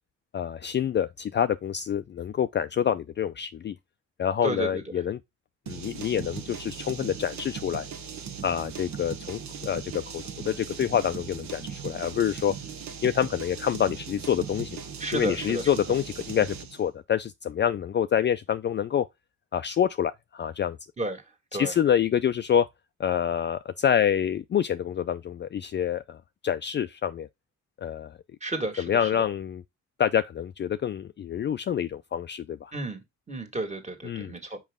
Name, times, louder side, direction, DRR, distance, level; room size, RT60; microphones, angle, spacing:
voice 1, 0.3-3.7 4.2-5.2 5.7-7.9 8.4-12.5 13.0-14.8 15.1-19.1 19.5-20.8 21.5-22.7 23.0-27.3 27.8-28.2 28.8-29.6 30.0-32.7 34.0-34.3, left 9 dB, 40° left, 0.4 m, -27 dB
voice 2, 4.4-4.8 15.0-15.6 21.0-21.2 21.5-21.7 28.4-28.8 32.7-33.0 33.3-34.6, right 2 dB, 25° right, 1.9 m, -31 dB
sound 1, 5.7-16.8, right 7 dB, 70° right, 1.2 m, -39 dB
5.4 x 5.0 x 3.6 m
cardioid pair, 90°, 30 cm